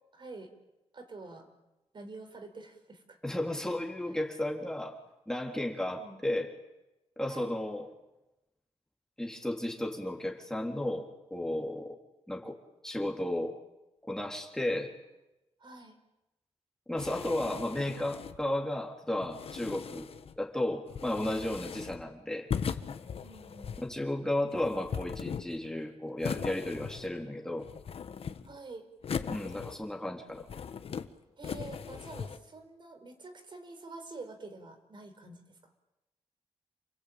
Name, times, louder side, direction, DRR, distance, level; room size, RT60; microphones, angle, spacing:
voice 1, 0.1-0.5 0.9-1.5 1.9-3.2 6.0-6.2 7.3-7.5 15.6-16.0 23.2-23.8 28.4-28.8 31.4-35.4, right 3 dB, 50° right, 6 dB, 4.7 m, -47 dB
voice 2, 3.2-5.0 5.3-6.5 7.2-7.9 9.2-12.0 12.3-12.6 12.8-13.6 14.0-14.9 16.9-20.1 20.4-22.5 23.8-27.7 29.3-30.5, left 1 dB, 5° left, 1 dB, 3.6 m, -33 dB
sound 1, 17.0-18.5 19.2-20.4 20.9-22.1 22.5-24.0 24.5-25.7 26.2-27.3 27.6-28.6 29.0-30.0 30.3-31.1 31.4-32.4, left 7 dB, 65° left, 1.5 m, -39 dB
28.5 x 21.0 x 8.9 m, 0.99 s
cardioid pair, 95°, 11 cm